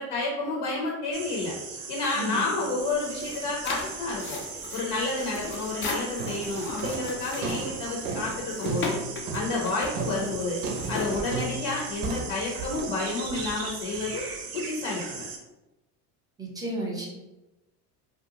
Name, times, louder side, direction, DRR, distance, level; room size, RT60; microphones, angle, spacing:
voice 1, 0.0-1.5 1.9-4.4 4.7-9.0 9.3-10.6 10.9-14.2 14.5-15.2, left 3 dB, 70° left, -2 dB, 0.8 m, -30 dB
sound 1, 1.1-15.4, right 5 dB, 85° right, 0.7 m, -39 dB
voice 2, 2.1-2.5 16.4-17.1, right 2 dB, 10° right, -3 dB, 0.8 m, -32 dB
sound 2, 2.8-11.9, left 3 dB, 25° left, 0.4 m, -38 dB
sound 3, 5.4-5.7 6.2-14.2, right 4 dB, 45° right, 0.6 m, -36 dB
2.5 x 2.2 x 2.7 m, 1.0 s
supercardioid pair, 90°, 48 cm